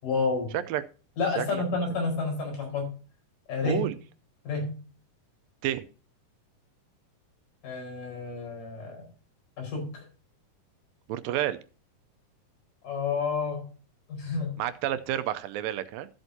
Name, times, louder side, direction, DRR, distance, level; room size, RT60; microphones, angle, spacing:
voice 1, 0.0-0.6 1.2-2.9 3.5-3.9 4.4-4.8 7.6-9.1 9.6-10.0 12.8-13.7 14.1-14.5, left 4 dB, 65° left, 1 dB, 6.3 m, -30 dB
voice 2, 3.6-4.0 5.6-5.9 11.1-11.6 14.6-16.1, right 12 dB, 85° right, 12 dB, 2.4 m, -30 dB
14.0 x 7.9 x 2.8 m, 0.36 s
omnidirectional pair, 3.9 m